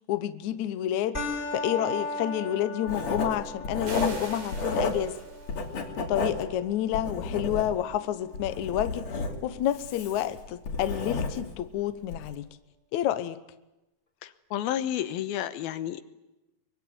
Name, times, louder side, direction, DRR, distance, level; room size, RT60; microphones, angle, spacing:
voice 1, 0.1-1.2 1.5-5.2 6.1-12.5 12.9-13.4, left 12 dB, 65° left, 11 dB, 2.0 m, -29 dB
sound 1, 1.1-10.1, left 2 dB, 15° left, 3.9 m, -39 dB
Writing, 2.9-5.2 5.5-8.0 8.3-11.6 12.0-12.3, left 3 dB, 50° left, 3.7 m, -32 dB
sound 2, 3.8-5.9, right 3 dB, 55° right, 5.0 m, -43 dB
voice 2, 14.2-16.0, left 11 dB, 85° left, 11 dB, 2.9 m, -31 dB
23.5 x 23.0 x 9.3 m, 0.98 s
omnidirectional pair, 4.2 m